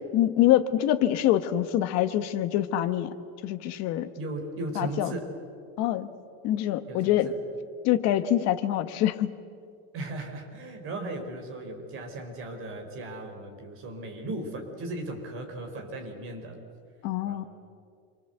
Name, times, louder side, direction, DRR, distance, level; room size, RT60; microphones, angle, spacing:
voice 1, 0.1-3.1 3.4-4.1 4.7-5.1 5.8-6.1 6.4-7.3 7.8-9.3 17.0-17.4, left 12 dB, 45° left, 9 dB, 1.4 m, -25 dB
voice 2, 4.2-5.3 6.9-7.2 9.9-16.6 17.2-17.5, right 2 dB, 35° right, 3 dB, 4.4 m, -37 dB
27.5 x 24.5 x 8.0 m, 2.3 s
cardioid pair, 175°, 38 cm